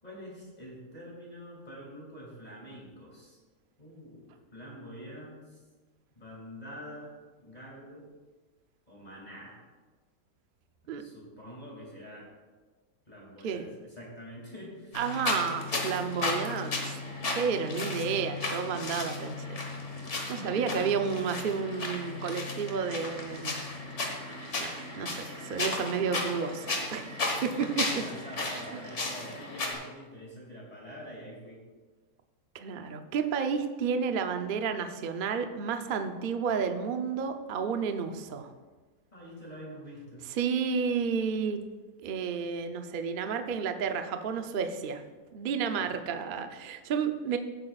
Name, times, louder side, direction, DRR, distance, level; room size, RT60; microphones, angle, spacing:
voice 1, 0.0-3.4 3.8-5.6 6.1-7.1 7.4-8.1 8.9-9.6 11.0-12.3 13.1-15.0 20.2-20.8 27.4-31.6 39.1-40.3 45.8-46.0, equal, 25° left, -4 dB, 2.5 m, -46 dB
sound 1, 14.9-29.7, left 2 dB, 45° left, 1.7 m, -35 dB
voice 2, 14.9-17.0 17.3-19.6 20.3-23.6 24.6-27.2 27.8-27.9 28.5-28.6 32.5-38.5 40.4-41.6 42.0-45.0 45.3-47.4, right 6 dB, 80° right, 6 dB, 0.4 m, -31 dB
15.5 x 8.6 x 2.4 m, 1.3 s
omnidirectional pair, 1.8 m